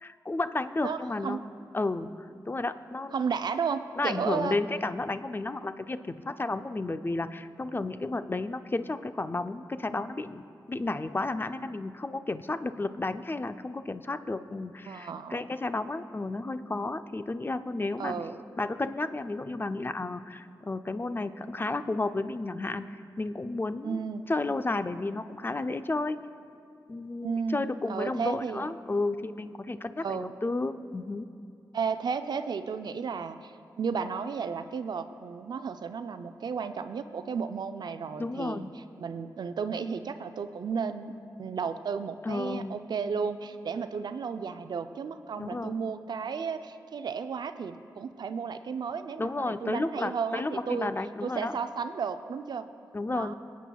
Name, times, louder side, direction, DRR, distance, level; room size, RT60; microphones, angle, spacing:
voice 1, 0.0-1.4 1.7-2.1 2.5-3.2 4.0-18.1 18.6-22.9 23.2-24.0 24.3-26.2 26.9-31.3 38.2-38.7 42.2-42.8 45.4-45.7 49.2-51.6 52.9-53.3, left 2 dB, 30° left, 10 dB, 0.5 m, -32 dB
voice 2, 0.8-1.4 3.1-4.6 14.9-15.4 18.0-18.4 23.8-24.3 27.2-28.7 30.0-30.3 31.7-33.5 33.8-38.7 39.0-41.1 41.4-50.9 51.2-52.7 53.1-53.3, right 6 dB, 65° right, 10 dB, 0.4 m, -33 dB
23.5 x 8.3 x 2.3 m, 2.4 s
cardioid pair, 45°, 8 cm